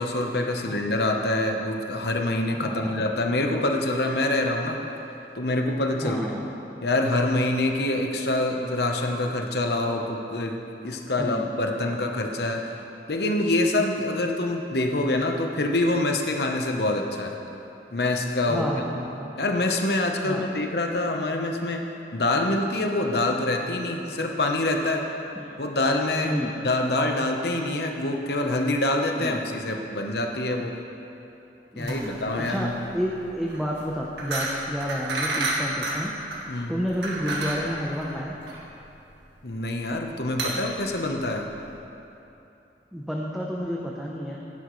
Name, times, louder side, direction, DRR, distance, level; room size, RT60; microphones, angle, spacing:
voice 1, 0.0-4.8 5.4-6.2 6.8-10.6 10.8-12.6 13.1-17.4 17.9-18.7 19.4-21.8 22.1-25.1 25.6-26.4 26.6-30.7 31.8-32.7 36.5-36.7 39.4-41.5, left 2 dB, 65° left, 3 dB, 1.0 m, -25 dB
voice 2, 2.5-3.0 6.0-6.5 11.2-11.5 18.5-19.3 20.2-20.5 25.4-25.6 26.2-26.6 29.2-29.4 31.7-32.7 32.9-36.1 36.7-38.4 42.9-44.4, equal, ahead, -4 dB, 0.7 m, -30 dB
sound 1, 31.8-41.8, right 2 dB, 80° right, 1.7 m, -32 dB
16.0 x 10.5 x 3.2 m, 2.9 s
head